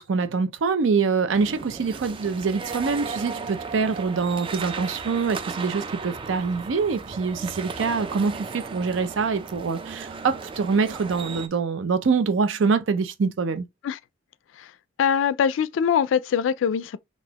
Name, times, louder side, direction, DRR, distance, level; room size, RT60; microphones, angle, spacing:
voice 1, 0.0-13.6, right 5 dB, 90° right, 0.5 m, -25 dB
sound 1, 1.3-11.5, right 4 dB, 30° right, 0.3 m, -36 dB
voice 2, 15.0-17.0, left 7 dB, 85° left, 0.3 m, -23 dB
4.0 x 2.4 x 2.8 m
head